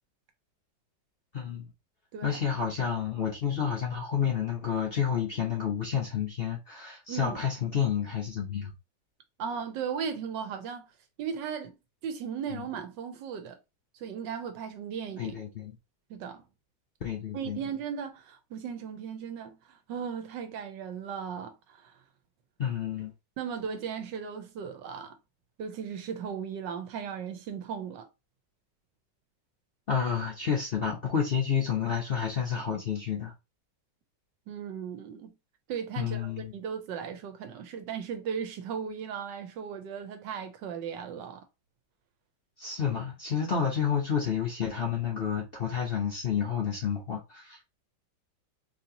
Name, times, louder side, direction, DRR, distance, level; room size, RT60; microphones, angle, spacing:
voice 1, 1.3-1.7 2.2-8.7 12.5-12.7 15.2-15.8 17.0-17.6 22.6-23.1 29.9-33.3 36.0-36.5 42.6-47.6, left 7 dB, 50° left, 0.7 m, -30 dB
voice 2, 7.1-7.4 9.4-10.9 11.2-11.8 12.0-13.6 14.0-15.4 16.1-16.4 17.3-22.0 23.4-25.2 25.6-28.1 34.5-35.3 35.7-41.4, right 7 dB, 80° right, 1.4 m, -37 dB
4.1 x 2.8 x 2.8 m
omnidirectional pair, 1.9 m